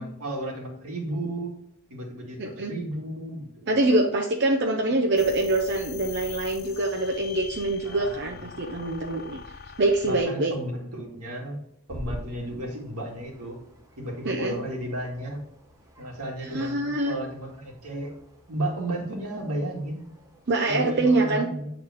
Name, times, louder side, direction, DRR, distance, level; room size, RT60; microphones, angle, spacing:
voice 1, 0.0-1.5 1.9-3.8 7.8-8.8 10.0-11.6 11.9-13.6 14.0-15.4 16.0-18.1 18.5-20.1 20.7-21.7, right 1 dB, 85° right, -1 dB, 1.9 m, -33 dB
voice 2, 2.4-2.7 3.7-9.4 9.8-10.5 14.2-14.6 16.4-17.1 20.5-21.5, right 2 dB, 50° right, 1 dB, 0.6 m, -24 dB
sound 1, 5.2-10.2, left 6 dB, 45° left, 0.5 m, -43 dB
sound 2, 11.9-20.5, equal, 15° right, 0.9 m, -47 dB
8.0 x 3.9 x 3.5 m, 0.73 s
head